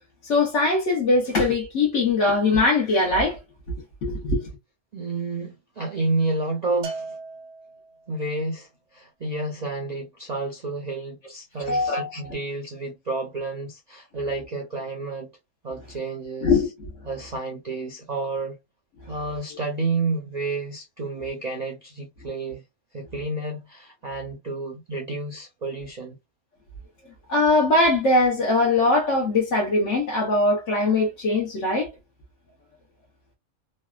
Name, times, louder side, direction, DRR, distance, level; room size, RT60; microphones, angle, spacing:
voice 1, 0.2-3.4 4.0-4.4 11.7-12.4 16.4-16.9 27.3-31.9, left 2 dB, 65° left, 1.2 m, -21 dB
voice 2, 4.9-7.2 8.1-15.3 15.6-16.5 17.0-18.6 19.1-22.6 22.9-26.1, right 3 dB, 45° right, 0.5 m, -30 dB
Bell, 6.8-8.2, right 3 dB, 70° right, 1.0 m, -37 dB
3.2 x 2.2 x 2.3 m
omnidirectional pair, 1.3 m